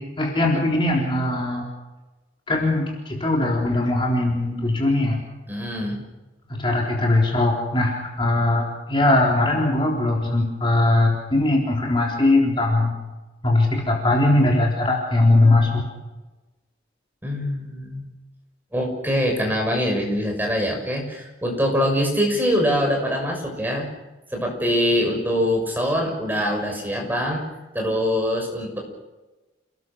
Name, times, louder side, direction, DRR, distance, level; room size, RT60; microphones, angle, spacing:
voice 1, 0.0-1.7 2.5-5.2 6.5-12.9 13.4-15.9, left 2 dB, 25° left, -1 dB, 3.8 m, -20 dB
voice 2, 5.5-6.0 17.2-18.1 18.7-23.9 24.3-27.4 27.7-28.8, equal, 10° right, 1 dB, 6.3 m, -23 dB
29.0 x 20.0 x 6.3 m, 1.1 s
head